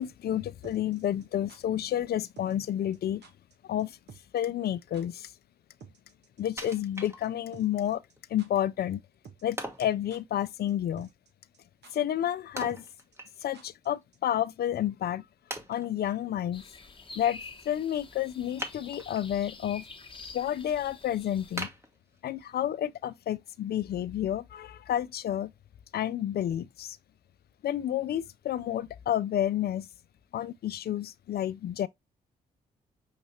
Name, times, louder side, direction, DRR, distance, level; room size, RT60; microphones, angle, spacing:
voice 1, 0.0-3.2 3.6-4.0 4.3-5.3 6.4-8.0 8.3-9.0 9.4-11.1 11.9-12.8 13.4-15.2 15.7-16.6 17.2-19.8 20.3-21.7 22.2-25.5 25.9-27.0 27.6-29.9 30.3-31.9, left 11 dB, 55° left, 0.4 m, -30 dB
sound 1, 0.6-1.6 2.4-2.7 2.9-3.0 3.2-3.5 3.8-4.4 4.6-4.7 4.9-5.0 5.8-7.0 7.2-7.3 7.5-8.1 8.4-8.5 9.2-9.6 9.8-10.4 10.7-10.8 11.0-11.3 11.5-11.6 11.8-11.9 12.7-13.9 14.1-14.2, right 6 dB, 60° right, 1.1 m, -52 dB
Wood, 6.6-7.7 8.2-8.3 9.6-10.0 12.6-13.7 14.0-14.1 14.8-14.9 15.5-16.2 18.6-19.3 19.8-20.3 20.7-20.8 21.6-22.6 23.1-23.2, right 1 dB, 15° right, 1.2 m, -40 dB
sound 2, 16.5-21.6, left 4 dB, 25° left, 1.1 m, -47 dB
6.5 x 2.7 x 3.0 m
hypercardioid pair, 40°, 20 cm